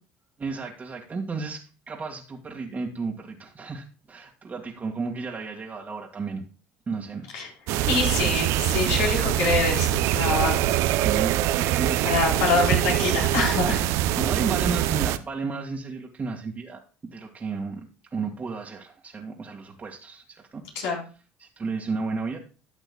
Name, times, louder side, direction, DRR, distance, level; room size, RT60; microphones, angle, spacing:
voice 1, 0.4-6.4 6.9-7.3 7.7-8.4 10.9-12.2 13.7-16.8 17.1-20.9 21.4-22.4, right 4 dB, 30° right, -1 dB, 1.9 m, -33 dB
sound 1, 7.7-15.2, right 13 dB, 70° right, 0.6 m, -24 dB
voice 2, 7.9-10.6 12.0-13.8 20.8-21.0, left 4 dB, 75° left, -1 dB, 4.0 m, -25 dB
12.5 x 8.0 x 2.3 m, 0.35 s
hypercardioid pair, 75°, 5 cm